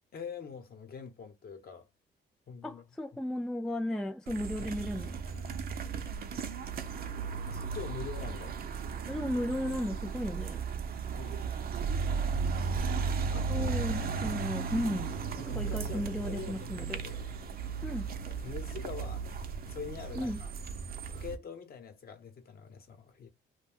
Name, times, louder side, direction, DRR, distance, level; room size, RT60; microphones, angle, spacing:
voice 1, 0.1-1.9 2.5-2.8 4.6-5.0 5.2-5.5 7.5-8.6 11.1-11.5 13.3-13.5 15.4-17.3 18.4-19.2 19.6-20.5 21.1-23.3, left 6 dB, 50° left, 0.8 m, -44 dB
voice 2, 2.6-5.2 9.1-10.6 13.5-15.1 15.4-17.0 17.8-18.1 20.2-20.4, left 1 dB, 5° left, 0.3 m, -35 dB
sound 1, 4.3-21.3, right 5 dB, 50° right, 0.5 m, -35 dB
2.5 x 2.2 x 3.4 m
cardioid pair, 90°, 20 cm